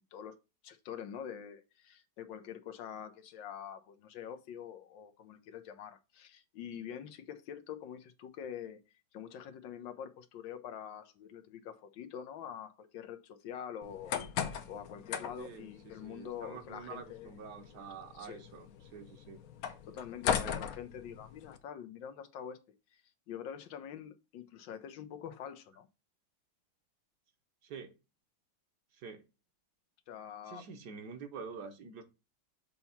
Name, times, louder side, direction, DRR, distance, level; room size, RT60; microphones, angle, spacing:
voice 1, 0.6-8.8 9.1-17.3 18.2-18.4 19.8-22.6 22.9-23.0 23.3-25.9 30.1-30.6, left 9 dB, 90° left, 1.5 m, -45 dB
sound 1, 13.8-21.6, left 8 dB, 65° left, 1.0 m, -39 dB
voice 2, 15.4-19.4 20.4-20.6 27.6-27.9 28.9-29.2 30.5-32.0, right 6 dB, 65° right, 1.4 m, -47 dB
6.8 x 2.9 x 5.6 m
omnidirectional pair, 2.0 m